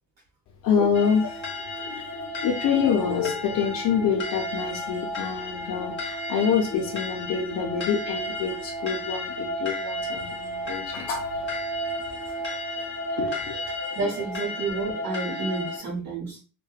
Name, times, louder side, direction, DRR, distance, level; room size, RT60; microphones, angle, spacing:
voice 1, 0.6-1.5 1.8-11.9 12.2-12.5 13.0-13.9, left 6 dB, 85° left, 1 dB, 0.5 m, -27 dB
sound 1, 0.9-15.8, left 1 dB, 35° left, 0.7 m, -33 dB
voice 2, 13.9-16.4, right 3 dB, 80° right, -2 dB, 0.9 m, -30 dB
2.8 x 2.1 x 2.3 m, 0.36 s
cardioid pair, 135°, 33 cm